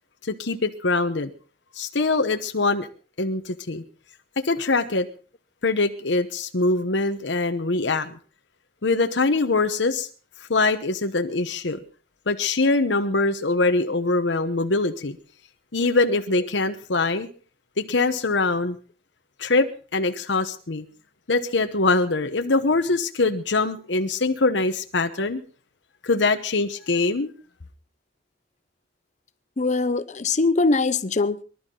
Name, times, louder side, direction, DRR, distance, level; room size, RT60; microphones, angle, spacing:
voice 1, 0.2-1.3 1.8-2.9 3.2-3.8 4.4-5.1 5.6-8.2 8.8-10.1 10.5-11.8 12.3-15.2 15.7-17.3 17.8-18.8 19.4-19.7 19.9-20.8 21.3-25.4 26.0-27.3, left 3 dB, 75° left, 1.0 m, -23 dB
voice 2, 29.6-31.4, left 3 dB, 40° left, 0.8 m, -22 dB
23.5 x 12.0 x 3.9 m
head